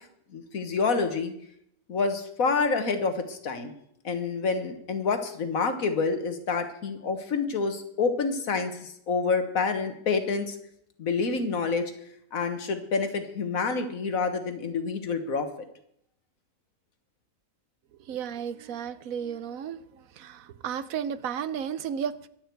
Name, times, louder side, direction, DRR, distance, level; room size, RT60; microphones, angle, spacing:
voice 1, 0.3-1.3 1.9-3.7 4.0-10.6 11.0-11.9 12.3-15.5, left 4 dB, 80° left, 8 dB, 1.8 m, -28 dB
voice 2, 18.1-19.8 20.2-22.3, right 8 dB, 85° right, 14 dB, 1.2 m, -33 dB
23.5 x 8.7 x 4.6 m, 0.73 s
omnidirectional pair, 1.4 m